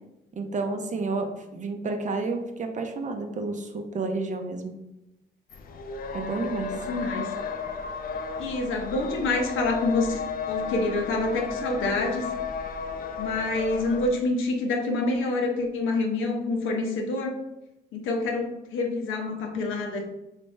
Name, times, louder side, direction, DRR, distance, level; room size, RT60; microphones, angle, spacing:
voice 1, 0.3-4.7 6.1-6.8, right 3 dB, 40° right, 5 dB, 0.5 m, -30 dB
sound 1, 5.5-14.1, left 5 dB, 45° left, 0.5 m, -34 dB
voice 2, 6.4-7.3 8.4-10.2 10.5-12.3 13.2-17.3 17.9-20.1, left 2 dB, 85° left, 2 dB, 0.7 m, -27 dB
3.3 x 3.3 x 3.1 m, 0.94 s
cardioid pair, 90°, 20 cm